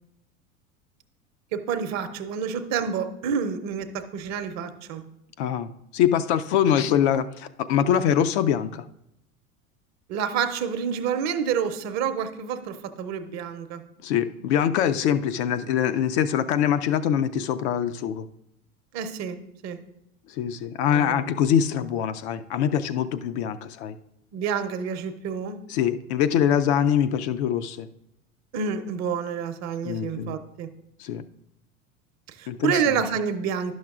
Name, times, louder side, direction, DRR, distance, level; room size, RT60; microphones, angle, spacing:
voice 1, 1.5-5.1 10.1-13.8 18.9-19.4 19.6-19.8 20.9-21.3 24.3-25.6 28.5-30.7 32.3-33.7, right 7 dB, 40° right, 9 dB, 0.7 m, -28 dB
voice 2, 5.4-8.9 14.0-18.3 20.3-24.0 25.7-27.9 29.8-30.4 31.0-31.2 32.5-33.0, left 9 dB, 55° left, 10 dB, 0.5 m, -24 dB
11.5 x 6.3 x 2.4 m, 0.81 s
figure-of-eight pair, 80°, 42 cm